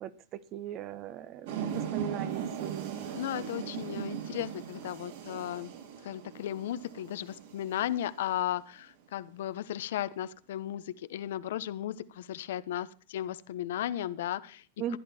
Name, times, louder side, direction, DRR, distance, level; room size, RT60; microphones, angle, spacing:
voice 1, 0.0-3.1 14.8-15.0, right 10 dB, 30° right, 1.1 m, -39 dB
sound 1, 1.5-8.4, right 8 dB, 60° right, 5.0 m, -39 dB
voice 2, 3.1-5.7 6.0-14.6, left 12 dB, 70° left, 1.1 m, -35 dB
15.0 x 11.0 x 4.5 m
supercardioid pair, 165°, 0 cm